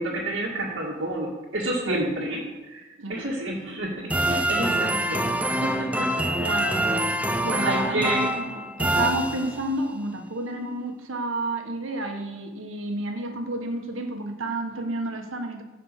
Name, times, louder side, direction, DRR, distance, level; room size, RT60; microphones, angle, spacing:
voice 1, 0.0-5.3 5.6-6.6 7.6-8.3, right 1 dB, 60° right, -6 dB, 2.0 m, -30 dB
sound 1, 4.1-9.8, right 1 dB, 5° right, 0.7 m, -25 dB
voice 2, 4.6-5.1 6.4-15.6, right 1 dB, 80° right, 4 dB, 1.6 m, -31 dB
15.0 x 5.4 x 6.7 m, 1.2 s
head